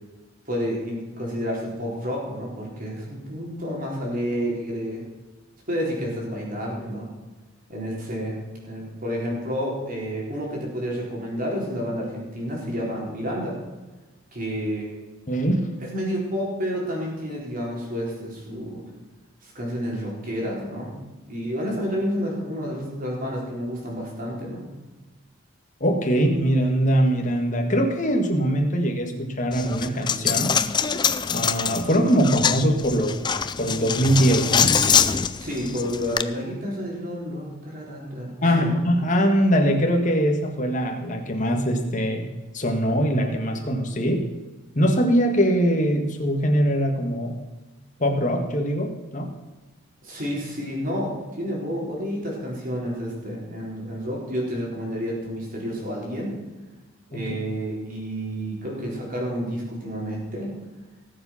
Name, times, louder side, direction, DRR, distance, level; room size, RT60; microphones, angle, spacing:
voice 1, 0.5-5.0 5.7-7.1 7.7-13.6 14.3-14.9 15.8-18.8 19.4-21.0 21.3-24.7 35.4-38.7 50.0-56.3 57.1-60.5, equal, 40° right, -2 dB, 4.2 m, -30 dB
voice 2, 15.3-15.7 25.8-30.5 31.3-33.2 33.6-34.7 38.4-42.3 42.5-44.3 44.8-47.4 48.0-49.3 57.1-57.3, equal, 35° left, 3 dB, 1.8 m, -22 dB
Coin (dropping), 29.5-36.2, left 7 dB, 20° left, 0.4 m, -24 dB
18.5 x 7.6 x 5.8 m, 1.2 s
head